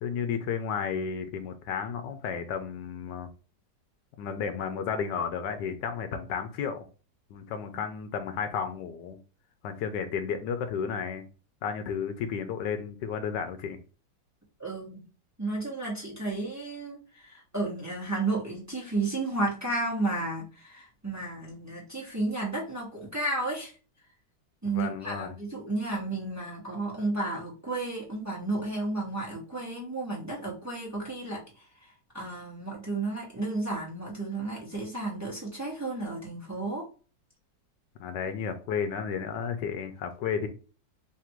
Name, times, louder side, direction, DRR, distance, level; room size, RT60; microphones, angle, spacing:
voice 1, 0.0-3.3 4.2-6.8 7.3-9.2 9.6-11.2 11.6-13.8 24.7-25.4 38.0-40.5, left 6 dB, 80° left, 8 dB, 1.2 m, -32 dB
voice 2, 14.6-15.0 15.4-23.7 24.6-31.4 31.8-31.9 32.1-36.8, right 2 dB, 10° right, -4 dB, 1.1 m, -32 dB
3.4 x 2.5 x 4.4 m, 0.35 s
omnidirectional pair, 1.9 m